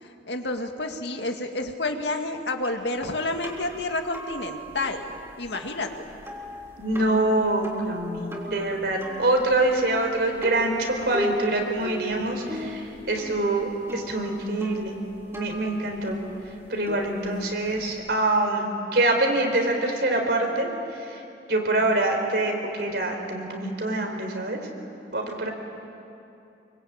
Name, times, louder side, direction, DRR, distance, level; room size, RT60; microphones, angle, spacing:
voice 1, 0.0-6.1, left 2 dB, 80° left, 4 dB, 2.2 m, -30 dB
sound 1, 2.6-18.0, equal, 15° right, 3.3 m, -37 dB
voice 2, 6.8-14.9 15.3-16.2 16.7-21.2 21.5-24.6 25.1-25.5, right 2 dB, 65° right, 3 dB, 4.2 m, -25 dB
26.0 x 24.0 x 8.9 m, 2.7 s
head